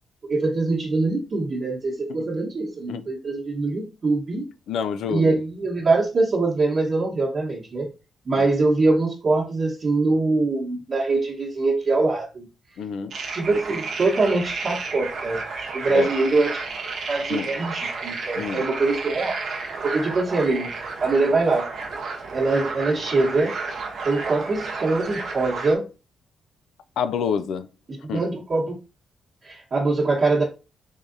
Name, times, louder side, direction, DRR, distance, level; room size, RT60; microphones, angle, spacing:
voice 1, 0.2-4.5 5.1-7.9 8.2-12.5 13.3-15.4 15.7-16.6 17.1-20.7 21.0-21.7 22.3-23.5 24.0-25.8 28.1-28.8 29.4-30.4, right 3 dB, 45° right, 1.0 m, -23 dB
voice 2, 4.7-5.4 8.3-8.5 12.8-13.1 15.9-16.1 17.3-17.5 18.3-18.7 27.0-27.7 28.1-28.3, left 6 dB, 80° left, 0.3 m, -28 dB
sound 1, 13.1-25.8, right 4 dB, 65° right, 0.8 m, -32 dB
3.7 x 3.2 x 2.6 m
cardioid pair, 80°, 0 cm